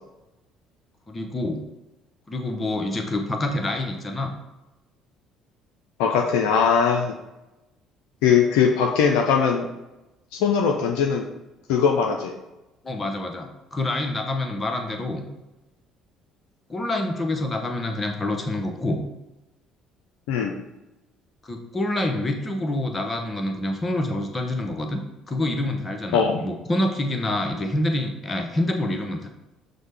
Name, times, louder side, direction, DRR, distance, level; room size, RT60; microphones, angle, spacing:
voice 1, 1.1-1.6 2.3-4.3 12.8-15.3 16.7-19.0 21.4-25.0 25.3-29.3, left 1 dB, 25° left, 4 dB, 0.7 m, -27 dB
voice 2, 6.0-7.1 8.2-9.7 10.3-11.3 11.7-12.3 20.3-20.5 26.1-26.4, left 6 dB, 70° left, 2 dB, 0.4 m, -20 dB
6.2 x 2.1 x 3.3 m, 0.98 s
figure-of-eight pair, 55°, 0 cm